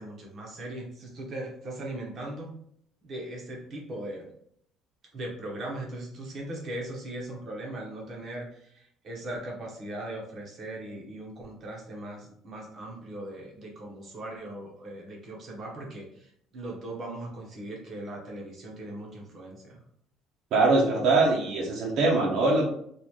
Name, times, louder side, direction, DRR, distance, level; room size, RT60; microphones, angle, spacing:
voice 1, 0.0-2.5 3.0-4.3 5.1-19.8, right 1 dB, 35° right, -2 dB, 1.1 m, -39 dB
voice 2, 20.5-22.7, right 3 dB, 55° right, -3 dB, 0.8 m, -22 dB
4.0 x 2.5 x 3.1 m, 0.67 s
cardioid pair, 165°, 0 cm